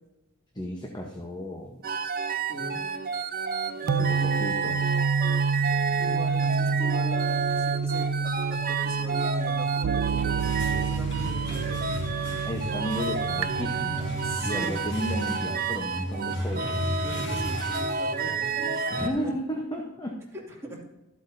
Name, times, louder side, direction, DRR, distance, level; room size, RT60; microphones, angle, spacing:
voice 1, 0.5-1.8 3.9-4.9 12.4-16.9 18.9-20.2, equal, 20° left, 1 dB, 1.0 m, -33 dB
sound 1, 1.8-19.1, right 5 dB, 45° right, 0.8 m, -30 dB
voice 2, 2.5-2.8 3.8-4.5 6.0-11.9 14.2-14.9 17.0-19.3 20.6-20.8, right 1 dB, 15° right, -5 dB, 2.6 m, -40 dB
sound 2, 3.9-14.4, right 5 dB, 90° right, 0.3 m, -28 dB
sound 3, 9.9-18.6, left 1 dB, 60° left, 2.0 m, -35 dB
12.5 x 8.1 x 2.7 m, 1.0 s
head